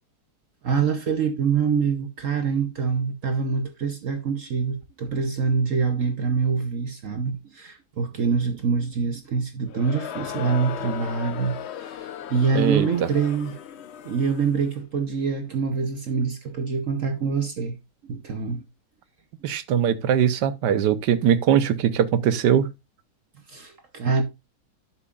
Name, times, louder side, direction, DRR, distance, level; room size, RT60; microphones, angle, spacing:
voice 1, 0.6-13.6 14.0-17.8 18.1-18.6 23.5-24.2, right 5 dB, 55° right, 1.1 m, -25 dB
Crowd, 9.7-14.7, left 9 dB, 75° left, 0.6 m, -36 dB
voice 2, 12.5-12.9 19.4-22.7, right 9 dB, 75° right, 1.4 m, -21 dB
11.5 x 7.0 x 2.4 m
omnidirectional pair, 1.9 m